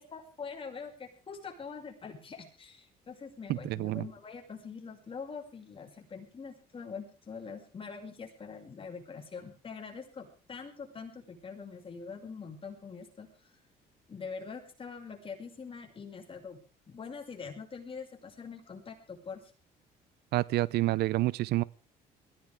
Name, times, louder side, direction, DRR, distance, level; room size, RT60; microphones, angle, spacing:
voice 1, 0.0-13.3 14.1-16.6 16.9-19.4, left 5 dB, 30° left, 6.1 m, -44 dB
voice 2, 3.5-4.0 20.3-21.6, right 17 dB, 75° right, 0.7 m, -28 dB
22.0 x 16.0 x 3.6 m
cardioid pair, 110°, 17 cm